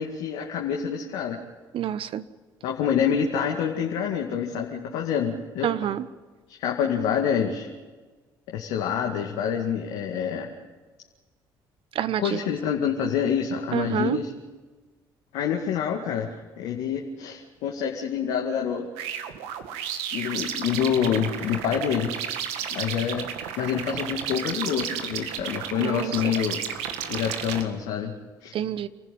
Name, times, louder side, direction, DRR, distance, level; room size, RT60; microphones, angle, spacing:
voice 1, 0.0-1.4 2.6-5.7 6.5-7.7 8.5-10.5 12.2-14.3 15.3-18.9 20.1-22.1 22.7-23.3 23.6-26.6 27.1-28.1 28.4-28.5, left 8 dB, 75° left, 0 dB, 2.3 m, -27 dB
voice 2, 1.7-2.2 5.6-6.1 11.9-12.4 13.7-14.2 25.8-26.3 28.5-28.9, right 10 dB, 60° right, 15 dB, 1.1 m, -28 dB
sound 1, 19.0-27.6, right 8 dB, 80° right, 1.9 m, -33 dB
28.5 x 15.5 x 9.4 m, 1.3 s
hypercardioid pair, 60°, 10 cm